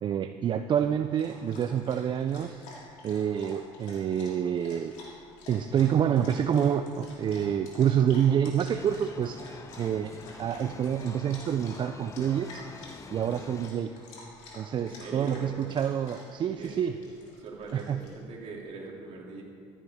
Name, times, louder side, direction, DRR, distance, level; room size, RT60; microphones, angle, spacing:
voice 1, 0.0-2.6 3.0-4.9 5.5-9.4 9.8-12.6 13.1-13.9 14.6-17.0 17.7-18.0, right 9 dB, 40° right, 9 dB, 0.4 m, -27 dB
Dog, 0.7-18.1, left 2 dB, 75° left, 3.0 m, -49 dB
sound 1, 8.7-13.7, left 5 dB, 25° left, 0.4 m, -46 dB
voice 2, 14.8-15.6 16.4-16.8 17.4-19.4, right 4 dB, 60° right, -2 dB, 2.7 m, -41 dB
14.5 x 9.9 x 3.6 m, 2.4 s
cardioid pair, 95°, 12 cm